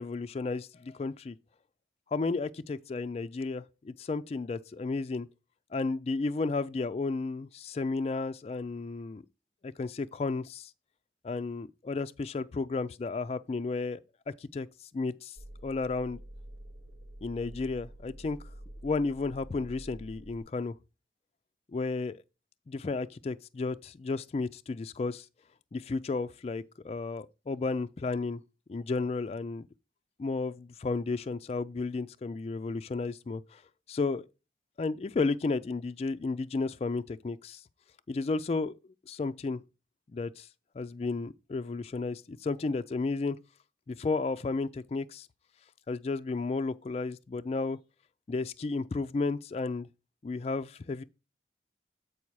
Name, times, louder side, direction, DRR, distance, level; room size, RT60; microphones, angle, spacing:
voice 1, 0.0-1.3 2.1-5.3 5.7-9.2 9.6-10.7 11.2-14.0 14.4-15.4 15.6-16.2 17.2-18.4 18.8-20.7 21.7-22.2 22.7-25.3 25.7-28.4 28.7-29.7 30.2-33.6 33.9-34.3 34.8-37.6 38.1-38.7 39.1-39.6 40.1-40.5 40.8-43.4 43.9-45.3 45.9-47.8 48.3-49.9 50.2-51.0, left 3 dB, 35° left, 0.3 m, -33 dB
sound 1, 15.4-20.4, right 1 dB, 70° right, 0.8 m, -47 dB
8.5 x 4.8 x 4.6 m
head